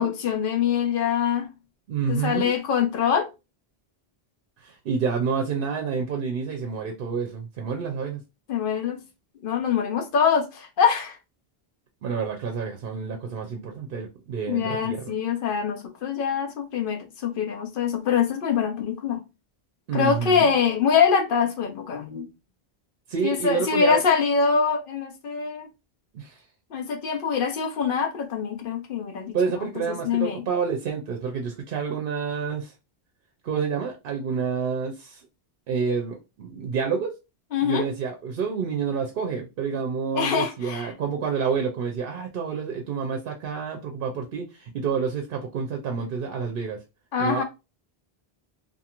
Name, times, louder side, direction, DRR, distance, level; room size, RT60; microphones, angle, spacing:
voice 1, 0.0-1.5 2.1-3.3 8.5-9.0 9.4-11.2 14.5-19.2 19.9-22.3 23.2-25.7 26.7-30.4 37.5-37.9 40.1-40.9 47.1-47.4, left 6 dB, 60° left, 0.8 m, -24 dB
voice 2, 1.9-2.5 4.6-8.2 12.0-15.0 19.9-20.5 23.1-24.0 26.1-26.4 29.3-32.7 33.4-35.2 35.7-37.1 37.6-46.8 47.2-47.4, right 6 dB, 65° right, 0.7 m, -28 dB
2.5 x 2.4 x 2.8 m
omnidirectional pair, 1.1 m